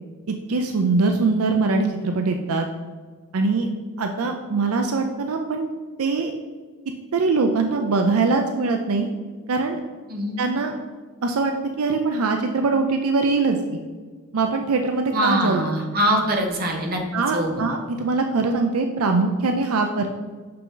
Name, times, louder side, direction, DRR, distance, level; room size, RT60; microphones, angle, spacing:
voice 1, 0.3-2.7 3.3-3.7 4.0-5.7 6.0-6.3 7.1-9.1 9.5-9.8 10.4-10.7 11.2-13.8 14.3-15.7 17.1-20.1, right 3 dB, 80° right, 4 dB, 0.5 m, -22 dB
voice 2, 10.1-10.4 15.1-17.0 17.3-17.5, right 1 dB, 45° right, 1 dB, 1.1 m, -23 dB
6.2 x 5.8 x 3.8 m, 1.4 s
head